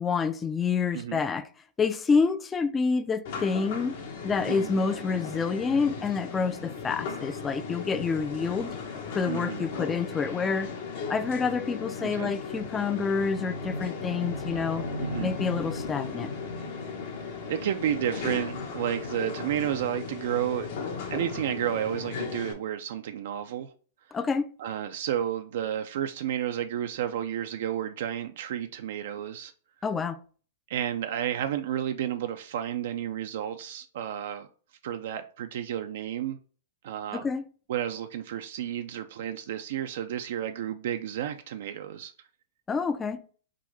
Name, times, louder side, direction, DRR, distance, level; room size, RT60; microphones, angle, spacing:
voice 1, 0.0-1.5 1.8-4.0 4.2-8.7 9.1-10.7 11.1-14.8 15.2-16.3 24.1-24.5 29.8-30.2 37.1-37.4 42.7-43.2, left 5 dB, 15° left, 0.3 m, -28 dB
sound 1, 3.2-22.5, left 4 dB, 55° left, 0.8 m, -36 dB
voice 2, 4.5-4.8 9.3-9.6 12.0-12.3 15.0-15.3 17.5-20.7 21.1-23.7 24.6-29.5 30.7-34.5 34.8-36.4 36.8-37.3 37.7-42.1, right 10 dB, 65° right, 0.3 m, -31 dB
3.7 x 2.6 x 3.2 m
hypercardioid pair, 120°, 0 cm